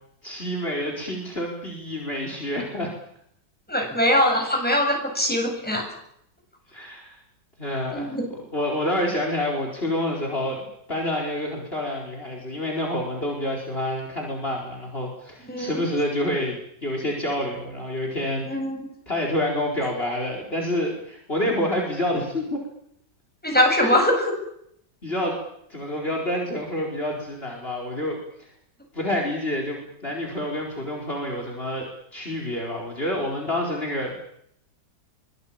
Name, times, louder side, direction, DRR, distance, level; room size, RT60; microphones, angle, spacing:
voice 1, 0.2-2.9 4.0-4.2 6.7-7.2 7.6-18.5 19.1-22.6 23.6-24.0 25.0-25.4 25.7-28.5 28.9-34.3, left 1 dB, 35° left, 1 dB, 4.8 m, -28 dB
voice 2, 3.7-5.8 7.9-8.2 15.4-15.8 18.5-18.8 23.4-24.3, left 1 dB, 5° left, 1 dB, 7.9 m, -22 dB
24.0 x 21.0 x 8.8 m, 0.73 s
omnidirectional pair, 1.8 m